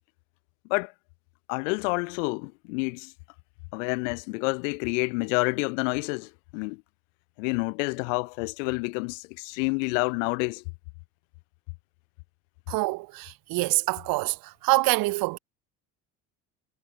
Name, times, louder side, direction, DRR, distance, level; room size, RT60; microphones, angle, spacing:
voice 1, 1.5-3.1 3.7-6.8 7.4-10.6, left 31 dB, 80° left, 5.5 m, -28 dB
voice 2, 12.7-14.3 14.6-15.4, right 22 dB, 65° right, 1.6 m, -25 dB
supercardioid pair, 95°, 37 cm